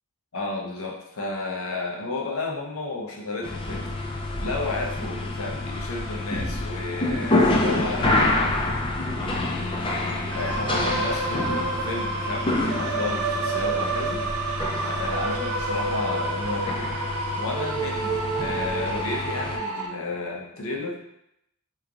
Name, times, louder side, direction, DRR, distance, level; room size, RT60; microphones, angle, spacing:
voice 1, 0.3-8.7 9.2-14.2 14.8-16.9 17.3-21.0, left 2 dB, 70° left, 0 dB, 0.7 m, -32 dB
sound 1, 3.4-19.6, left 2 dB, 25° left, 0.4 m, -28 dB
sound 2, 10.3-19.9, right 3 dB, 85° right, 0.6 m, -29 dB
3.1 x 2.3 x 3.8 m, 0.81 s
head